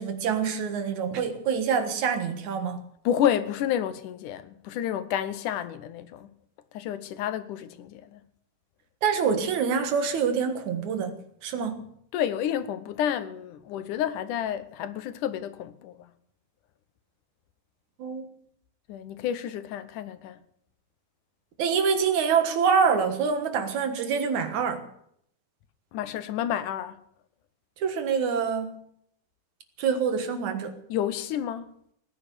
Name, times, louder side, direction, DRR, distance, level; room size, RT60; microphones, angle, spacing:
voice 1, 0.0-2.8 9.0-11.1 11.4-11.8 18.0-18.3 21.6-24.8 27.8-28.8 29.8-30.8, right 6 dB, 75° right, 2.9 m, -26 dB
voice 2, 3.0-6.3 6.7-8.2 12.1-16.1 18.9-20.4 25.9-27.0 30.9-31.7, left 10 dB, 85° left, 2.6 m, -30 dB
18.5 x 10.5 x 6.9 m
omnidirectional pair, 3.5 m